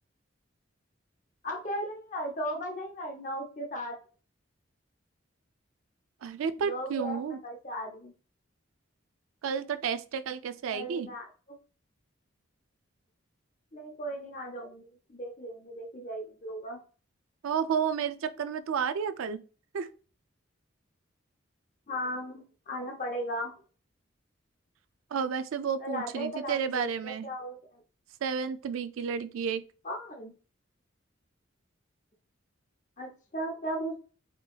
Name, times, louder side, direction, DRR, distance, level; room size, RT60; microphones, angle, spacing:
voice 1, 1.4-4.0 6.6-8.1 10.7-11.3 13.7-16.8 21.9-23.5 25.8-27.8 29.8-30.3 33.0-34.0, equal, 35° left, 0.6 m, -36 dB
voice 2, 6.2-7.4 9.4-11.1 17.4-19.4 19.7-19.9 25.1-27.3 28.2-29.6, right 6 dB, 85° right, 0.3 m, -31 dB
4.4 x 2.7 x 2.3 m
head